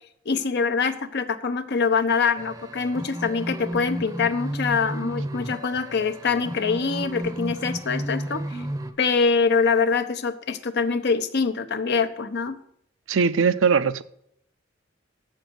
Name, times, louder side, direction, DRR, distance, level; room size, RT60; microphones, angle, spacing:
voice 1, 0.3-8.6 9.0-12.6, left 5 dB, 60° left, 0.8 m, -24 dB
sound 1, 2.4-8.9, right 1 dB, 15° right, 0.7 m, -32 dB
voice 2, 13.1-14.0, right 5 dB, 80° right, 0.5 m, -20 dB
7.8 x 6.4 x 7.9 m
head